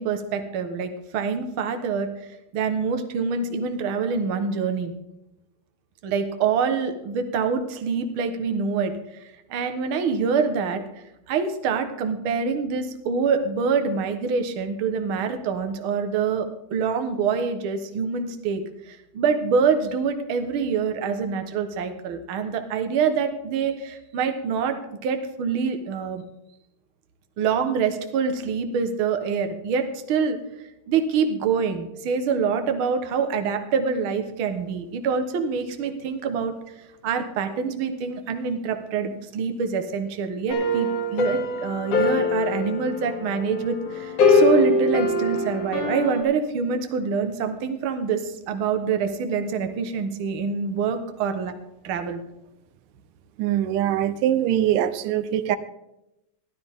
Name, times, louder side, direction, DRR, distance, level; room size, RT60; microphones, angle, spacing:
voice 1, 0.0-2.1 2.5-4.9 6.0-10.8 11.3-24.8 25.0-26.2 27.4-30.4 30.9-36.6 37.0-51.5 51.8-52.2, right 5 dB, 60° right, 7 dB, 1.4 m, -25 dB
sound 1, 40.5-46.2, left 2 dB, 70° left, 3.5 m, -23 dB
voice 2, 53.4-55.6, right 11 dB, 90° right, 13 dB, 2.4 m, -22 dB
16.0 x 12.0 x 3.6 m, 0.89 s
omnidirectional pair, 3.7 m